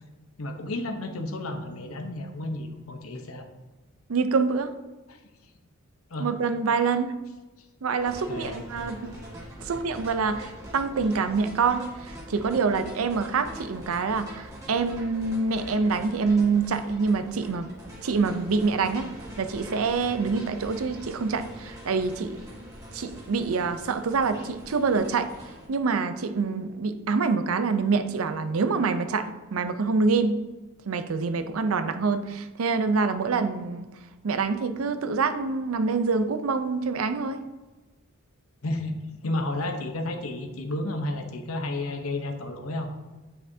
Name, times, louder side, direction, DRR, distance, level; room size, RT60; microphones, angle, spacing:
voice 1, 0.4-3.5 5.1-5.2 6.1-6.3 8.3-8.6 38.6-38.9 39.2-42.9, left 2 dB, 90° left, 5 dB, 0.8 m, -32 dB
voice 2, 4.1-4.7 6.2-7.1 7.8-9.1 9.6-17.7 18.0-19.1 19.4-22.4 22.9-25.3 25.7-30.4 30.9-33.9 34.2-37.4, right 4 dB, 85° right, 10 dB, 0.5 m, -26 dB
sound 1, 8.0-25.7, equal, 15° right, 1.6 m, -43 dB
8.5 x 5.7 x 2.7 m, 1.2 s
head